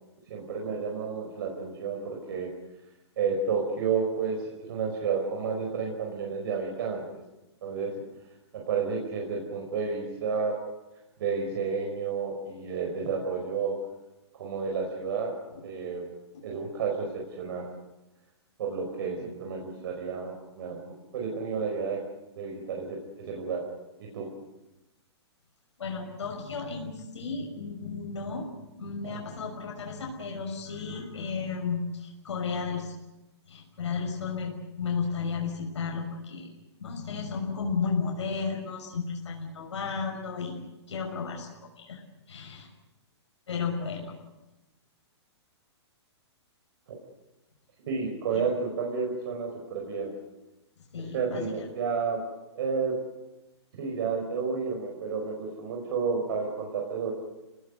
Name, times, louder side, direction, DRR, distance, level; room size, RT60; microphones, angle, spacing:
voice 1, 0.3-2.5 3.2-7.2 7.6-7.9 8.5-10.6 11.2-13.8 14.3-15.3 15.6-16.1 16.4-17.7 18.6-22.0 22.3-23.7 24.0-24.3 29.0-29.1 47.9-50.1 51.1-52.2 52.5-53.0 53.7-57.1, right 5 dB, 55° right, 0 dB, 5.1 m, -31 dB
voice 2, 25.8-28.5 28.8-32.9 33.5-36.5 36.8-42.0 42.3-42.7 43.5-44.1 48.3-48.4 50.9-51.7, left 5 dB, 90° left, 1 dB, 6.0 m, -33 dB
27.0 x 19.0 x 8.1 m, 1.0 s
hypercardioid pair, 160°, 15 cm